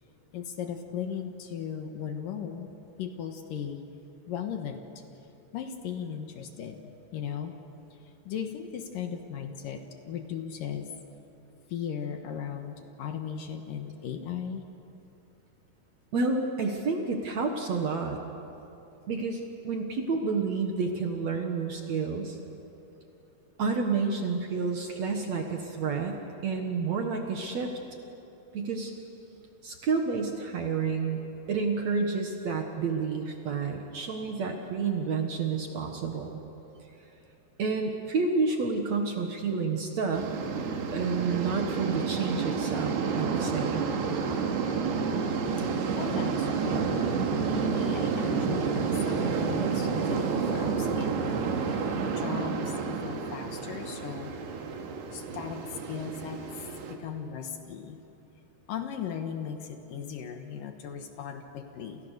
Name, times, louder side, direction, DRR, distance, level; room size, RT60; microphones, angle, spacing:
voice 1, 0.3-2.7 3.0-3.8 4.3-4.9 5.5-7.6 8.3-10.9 11.7-14.7 45.6-47.0 47.5-54.3 55.1-56.4 56.9-58.0 58.7-62.0, left 8 dB, 65° left, 6 dB, 2.6 m, -37 dB
voice 2, 16.1-18.2 19.1-22.4 23.6-27.8 28.5-28.9 29.6-31.2 31.5-36.4 37.6-40.3 40.9-43.8, right 4 dB, 55° right, 3 dB, 2.2 m, -30 dB
sound 1, 40.1-57.0, right 5 dB, 85° right, 4.0 m, -30 dB
29.0 x 28.0 x 6.7 m, 2.9 s
omnidirectional pair, 4.6 m